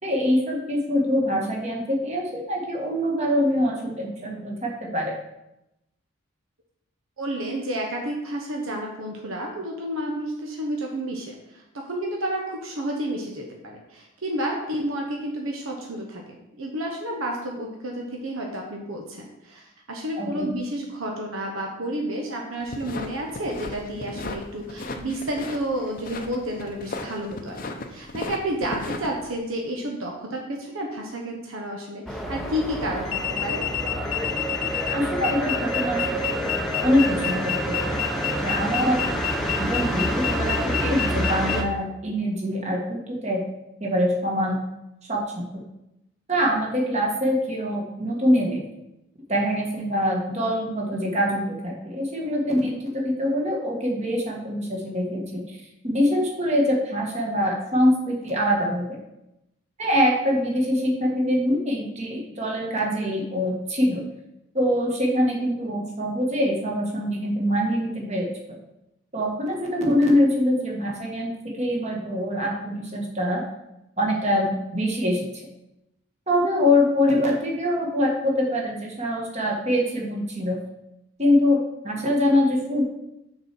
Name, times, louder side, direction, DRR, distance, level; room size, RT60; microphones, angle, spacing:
voice 1, 0.0-5.1 20.2-20.5 34.9-36.2 36.8-37.9 38.4-39.0 39.6-43.4 43.8-44.6 45.1-45.6 46.3-48.6 49.3-55.4 55.8-59.0 59.8-64.0 64.5-68.3 69.1-73.4 74.0-75.2 76.3-80.6 81.2-81.6 81.8-82.8, left 1 dB, 30° right, -1 dB, 1.4 m, -24 dB
voice 2, 7.2-16.2 16.6-27.6 27.9-33.7, right 1 dB, 80° right, 0 dB, 1.0 m, -30 dB
sound 1, 22.6-29.4, left 2 dB, 40° left, 0.6 m, -36 dB
sound 2, 32.1-41.6, equal, ahead, 0.6 m, -28 dB
sound 3, 33.0-41.6, left 14 dB, 90° left, 0.7 m, -29 dB
6.6 x 4.4 x 6.0 m, 0.89 s
head